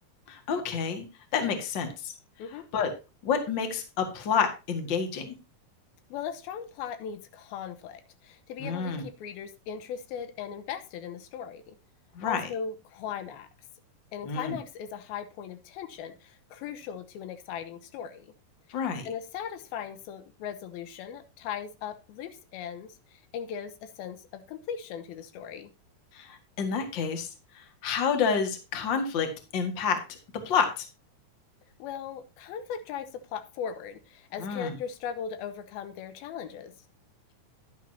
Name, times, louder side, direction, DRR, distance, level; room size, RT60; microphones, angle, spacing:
voice 1, 0.3-1.0 1.3-2.1 2.7-2.9 3.2-5.3 8.6-9.0 12.2-12.5 14.2-14.6 18.7-19.1 26.1-27.3 27.5-30.0 30.4-30.9 34.4-34.7, left 6 dB, 40° left, 6 dB, 1.8 m, -29 dB
voice 2, 6.1-11.8 12.3-13.5 14.1-18.3 19.0-25.7 31.8-36.7, left 8 dB, 90° left, 10 dB, 2.9 m, -38 dB
11.0 x 9.7 x 2.7 m, 0.29 s
omnidirectional pair, 4.2 m